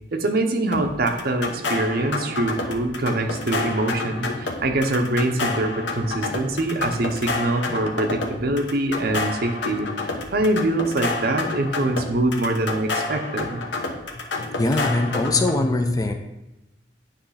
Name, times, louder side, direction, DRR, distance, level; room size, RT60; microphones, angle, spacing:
voice 1, 0.1-13.6, right 2 dB, 55° right, 5 dB, 0.8 m, -24 dB
sound 1, 0.7-15.6, left 3 dB, 70° left, 0.9 m, -29 dB
voice 2, 14.6-16.1, left 2 dB, 20° left, 5 dB, 0.4 m, -21 dB
8.7 x 3.2 x 5.7 m, 0.96 s
head